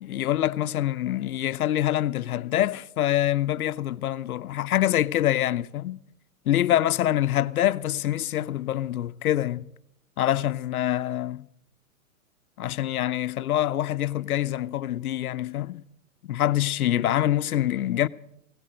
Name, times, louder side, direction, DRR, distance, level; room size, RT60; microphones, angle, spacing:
voice 1, 0.0-6.0 6.5-9.7 10.2-11.5 12.6-15.8 16.2-18.1, left 13 dB, 90° left, 0.7 m, -25 dB
17.0 x 16.5 x 5.1 m
hypercardioid pair, 150°, 43 cm